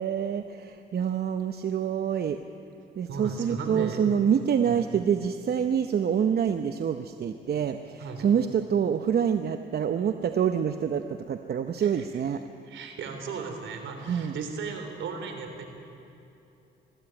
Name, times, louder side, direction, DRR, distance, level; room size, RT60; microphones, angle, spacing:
voice 1, 0.0-2.4 3.0-12.4 14.1-14.4, right 8 dB, 50° right, 8 dB, 0.8 m, -26 dB
voice 2, 3.1-4.0 4.6-4.8 8.0-8.3 11.8-12.0 12.7-15.6, right 5 dB, 75° right, 5 dB, 3.4 m, -36 dB
21.5 x 15.0 x 8.9 m, 2.8 s
cardioid pair, 90°, 20 cm